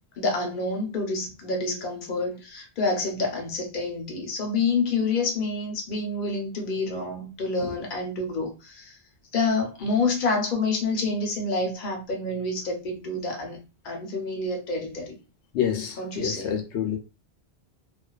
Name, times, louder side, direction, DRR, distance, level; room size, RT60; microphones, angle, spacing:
voice 1, 0.2-9.0 9.3-13.6 13.8-15.2 16.0-16.6, left 3 dB, 55° left, 0.9 m, -28 dB
voice 2, 15.5-17.0, left 9 dB, 85° left, 0.9 m, -28 dB
2.4 x 2.3 x 2.3 m
omnidirectional pair, 1.1 m